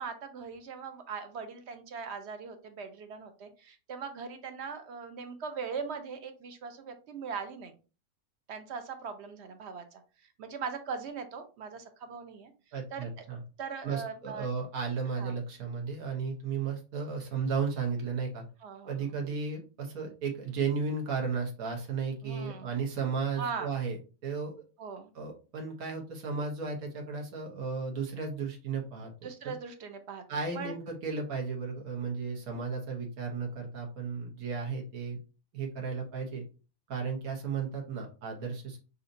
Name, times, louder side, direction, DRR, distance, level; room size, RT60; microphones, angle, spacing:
voice 1, 0.0-7.7 8.5-10.0 10.4-12.5 12.9-13.0 13.6-14.5 15.1-15.3 18.6-19.1 22.2-22.7 23.4-23.7 24.8-25.1 29.2-30.2 30.5-30.7, right 5 dB, 60° right, 8 dB, 0.8 m, -40 dB
voice 2, 12.7-13.4 13.8-18.5 18.8-24.0 24.2-24.5 25.1-29.1 29.4-29.5 30.3-35.2 35.5-36.4 36.9-38.8, right 5 dB, 80° right, 0 dB, 1.4 m, -34 dB
5.7 x 2.6 x 2.6 m, 0.33 s
omnidirectional pair, 1.5 m